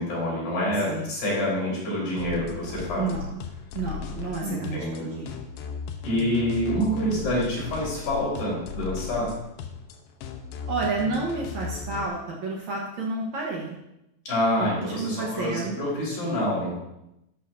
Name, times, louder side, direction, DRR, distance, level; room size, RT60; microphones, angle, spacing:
voice 1, 0.0-3.1 4.4-5.1 6.0-9.3 14.3-16.8, equal, 55° left, -6 dB, 6.1 m, -27 dB
sound 1, 2.2-12.1, left 6 dB, 80° left, 3.1 m, -36 dB
voice 2, 3.0-3.4 3.7-5.4 10.7-13.8 14.6-15.9, right 3 dB, 70° right, -2 dB, 1.8 m, -30 dB
12.5 x 12.0 x 2.7 m, 0.87 s
omnidirectional pair, 5.0 m